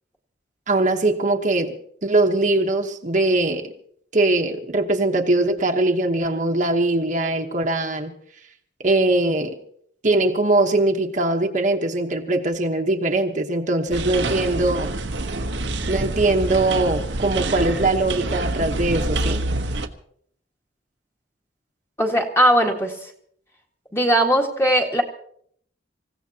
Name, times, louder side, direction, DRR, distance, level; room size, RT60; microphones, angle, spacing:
voice 1, 0.7-1.7 2.0-3.7 4.1-8.1 8.8-9.5 10.0-14.9 15.9-19.4, right 2 dB, 40° right, 3 dB, 1.1 m, -21 dB
sound 1, 13.9-19.9, right 2 dB, 75° right, 1.1 m, -26 dB
voice 2, 22.0-23.1 23.9-25.0, right 1 dB, 15° left, 1 dB, 1.7 m, -19 dB
27.0 x 16.0 x 2.9 m, 0.64 s
head